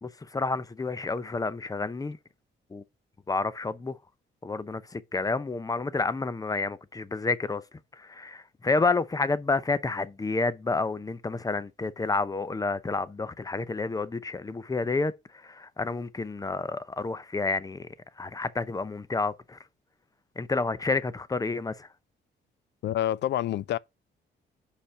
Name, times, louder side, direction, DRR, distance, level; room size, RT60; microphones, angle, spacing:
voice 1, 0.0-2.2 2.7-2.8 3.3-4.0 4.4-7.6 7.9-17.9 18.2-19.6 20.4-21.9, left 3 dB, 20° left, 0.6 m, -30 dB
voice 2, 22.8-23.8, left 12 dB, 60° left, 0.4 m, -27 dB
5.4 x 5.0 x 5.6 m
cardioid pair, 90°, 20 cm